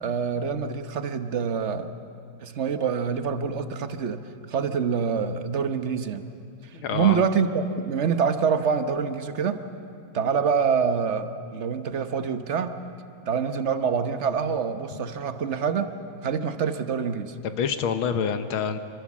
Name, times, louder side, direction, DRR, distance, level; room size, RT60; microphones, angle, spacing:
voice 1, 0.0-1.9 2.4-4.2 4.5-6.2 6.9-9.6 10.1-12.8 13.3-15.9 16.2-17.3, right 6 dB, 45° right, 9 dB, 1.0 m, -26 dB
voice 2, 6.7-7.3 14.9-15.0 17.4-18.8, left 7 dB, 80° left, 9 dB, 1.9 m, -27 dB
26.5 x 24.0 x 7.4 m, 2.4 s
omnidirectional pair, 2.2 m